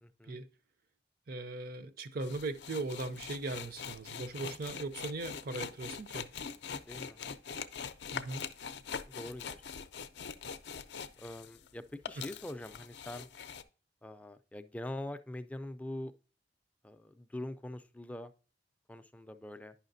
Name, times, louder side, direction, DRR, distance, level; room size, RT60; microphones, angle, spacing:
voice 1, 0.0-0.4 4.2-4.6 6.9-7.2 9.1-9.6 11.2-13.3 14.0-16.1 16.8-18.3 18.9-19.7, left 1 dB, 10° left, 0.4 m, -44 dB
voice 2, 1.3-6.3 8.1-8.4 12.2-12.3, right 2 dB, 55° right, 0.5 m, -39 dB
sound 1, 2.2-11.7 11.9-13.6, left 7 dB, 70° left, 0.5 m, -43 dB
9.6 x 5.7 x 2.6 m
head